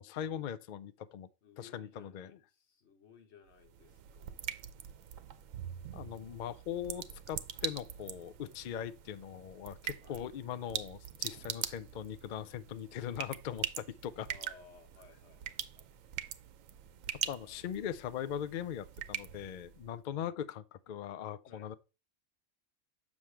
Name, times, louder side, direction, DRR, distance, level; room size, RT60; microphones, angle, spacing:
voice 1, 0.0-1.3 1.6-2.3 5.9-14.3 17.1-21.7, left 9 dB, 80° left, 0.4 m, -40 dB
voice 2, 1.4-4.5 10.0-10.2 11.4-11.6 13.1-13.3 14.3-15.9 17.3-17.9 21.5-21.8, left 5 dB, 55° left, 1.3 m, -60 dB
sound 1, 3.5-19.9, right 10 dB, 75° right, 1.0 m, -43 dB
7.3 x 6.2 x 3.3 m
omnidirectional pair, 1.4 m